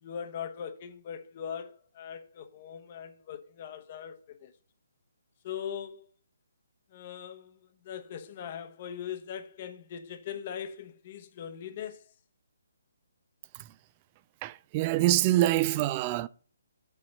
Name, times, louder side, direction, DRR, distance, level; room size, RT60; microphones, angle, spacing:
voice 1, 0.0-4.5 5.4-6.1 6.9-12.0, left 8 dB, 35° left, 1.0 m, -40 dB
voice 2, 14.4-16.3, right 15 dB, 30° right, 0.4 m, -25 dB
8.1 x 4.2 x 6.9 m
figure-of-eight pair, 140°, 0 cm